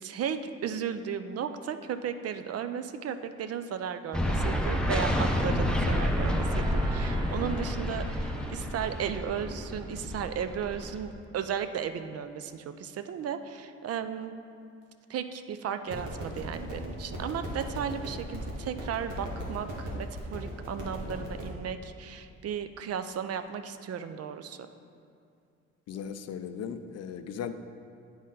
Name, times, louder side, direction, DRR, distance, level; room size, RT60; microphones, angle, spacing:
voice 1, 0.0-14.3 15.1-24.6, right 8 dB, 55° right, 10 dB, 0.4 m, -35 dB
sound 1, 4.1-11.1, equal, 5° left, 0.6 m, -29 dB
sound 2, 6.0-10.9, right 1 dB, 15° right, 1.0 m, -46 dB
sound 3, 15.9-21.4, equal, 80° right, 1.6 m, -38 dB
voice 2, 25.9-27.5, left 7 dB, 55° left, 9 dB, 0.5 m, -37 dB
9.4 x 4.1 x 3.8 m, 2.4 s
cardioid pair, 90°, 30 cm